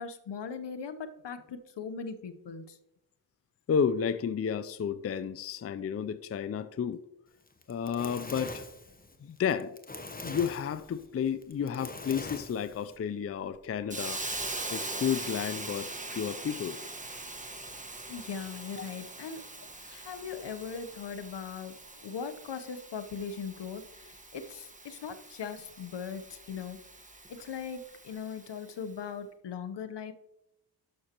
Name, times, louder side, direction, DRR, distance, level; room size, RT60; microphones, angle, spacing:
voice 1, 0.0-2.8 18.1-19.4 19.8-21.7 22.0-26.8 27.3-30.1, left 6 dB, 70° left, 0.9 m, -39 dB
voice 2, 3.7-7.0 7.7-8.6 9.2-9.8 10.2-14.3 14.7-16.8, left 7 dB, 35° left, 0.4 m, -32 dB
Fire, 7.5-13.0, left 2 dB, 20° left, 1.0 m, -43 dB
Hiss, 13.9-28.7, right 2 dB, 15° right, 1.3 m, -42 dB
11.5 x 6.3 x 2.9 m
cardioid pair, 70°, 43 cm